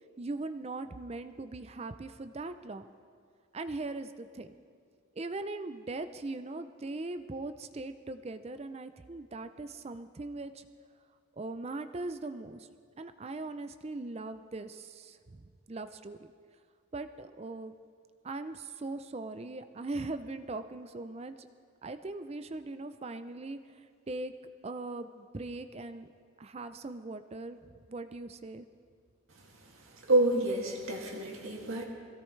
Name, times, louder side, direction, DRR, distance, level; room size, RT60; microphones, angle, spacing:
voice 1, 0.2-2.9 3.5-4.5 5.2-10.7 11.4-12.7 13.0-16.2 16.9-17.7 18.2-21.5 21.8-23.6 24.1-24.3 24.6-26.1 26.4-27.6 27.9-28.7, right 2 dB, 30° right, 10 dB, 0.4 m, -40 dB
voice 2, 30.1-31.8, right 2 dB, 75° right, -1 dB, 2.3 m, -28 dB
22.0 x 16.5 x 3.2 m, 2.1 s
head